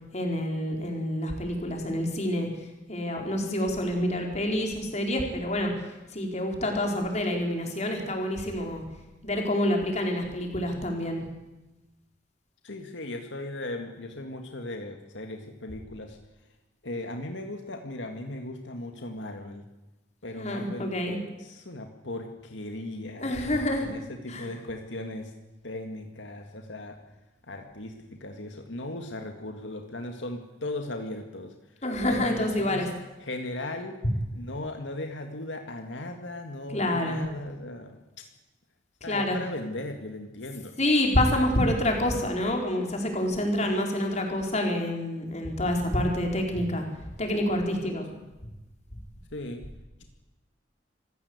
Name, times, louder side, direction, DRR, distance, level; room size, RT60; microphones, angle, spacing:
voice 1, 0.1-2.5 2.9-5.7 6.1-8.8 9.2-11.2 20.4-21.2 23.2-23.9 24.3-24.5 31.8-32.9 36.7-37.2 39.1-39.4 40.8-46.8 47.2-48.1, left 1 dB, 35° left, 2 dB, 4.8 m, -27 dB
voice 2, 12.6-16.2 16.8-19.7 20.2-21.0 21.4-23.3 23.8-25.3 25.6-27.0 27.4-31.5 32.0-32.9 33.2-33.9 34.3-38.3 39.0-40.8 48.1-48.3 49.3-49.7, left 1 dB, 80° left, 4 dB, 2.1 m, -37 dB
26.0 x 16.5 x 8.2 m, 1.0 s
head